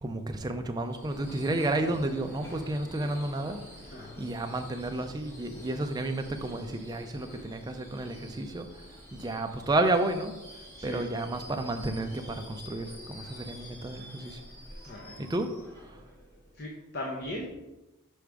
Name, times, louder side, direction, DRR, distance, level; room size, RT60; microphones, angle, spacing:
voice 1, 0.0-3.6 4.2-8.7 9.1-10.4 10.8-14.4 15.2-15.5 15.8-16.0, right 2 dB, 20° right, 6 dB, 0.4 m, -31 dB
Subway metro underground / Screech, 0.8-16.8, equal, 10° left, 1.0 m, -47 dB
voice 2, 3.9-4.3 10.8-11.1 14.8-15.2 16.5-17.6, left 1 dB, 45° left, -1 dB, 0.8 m, -38 dB
6.2 x 4.8 x 3.4 m, 1.0 s
head